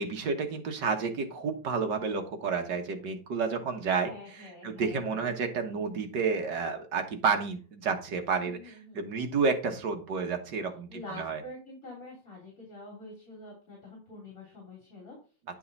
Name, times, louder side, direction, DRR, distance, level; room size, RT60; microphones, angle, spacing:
voice 1, 0.0-11.4, right 5 dB, 65° right, 5 dB, 1.9 m, -30 dB
voice 2, 4.1-5.3 8.4-9.0 10.9-15.2, left 2 dB, 45° left, -3 dB, 3.8 m, -46 dB
10.5 x 5.7 x 4.1 m, 0.37 s
omnidirectional pair, 2.1 m